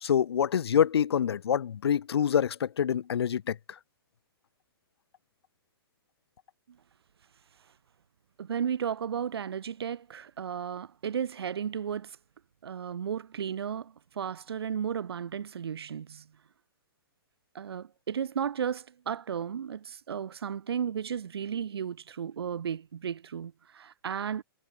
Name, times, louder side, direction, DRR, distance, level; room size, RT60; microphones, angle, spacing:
voice 1, 0.0-3.8, left 8 dB, 90° left, 0.7 m, -26 dB
voice 2, 8.4-12.2 12.6-16.3 17.5-24.4, right 8 dB, 80° right, 1.3 m, -34 dB
hypercardioid pair, 175°, 13 cm